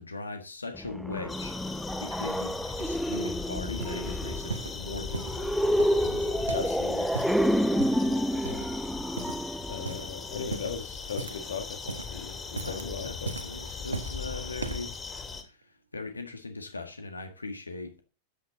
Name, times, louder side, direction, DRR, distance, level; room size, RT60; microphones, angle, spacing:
voice 1, 0.0-1.6 2.0-5.5 6.0-6.6 12.6-15.0 15.4-15.6 15.9-18.0, left 3 dB, 80° left, 1.6 m, -40 dB
sound 1, 0.7-10.5, equal, ahead, 0.7 m, -29 dB
sound 2, 1.3-15.4, left 5 dB, 15° left, 2.9 m, -39 dB
sound 3, 2.7-3.4 3.8-4.1 4.5-5.4 5.8-6.8 7.0-7.4 7.8-8.1 8.4-8.9 9.2-9.5 9.8-10.1 10.5-11.5 11.8-12.2 12.5-12.9 13.3-14.2 14.6-15.0 15.6-15.7, right 4 dB, 75° right, 1.3 m, -38 dB
voice 2, 6.5-7.1 8.0-8.6 9.7-13.3 13.7-13.8, left 6 dB, 65° left, 1.8 m, -38 dB
13.5 x 8.7 x 4.0 m
figure-of-eight pair, 90°, 0 cm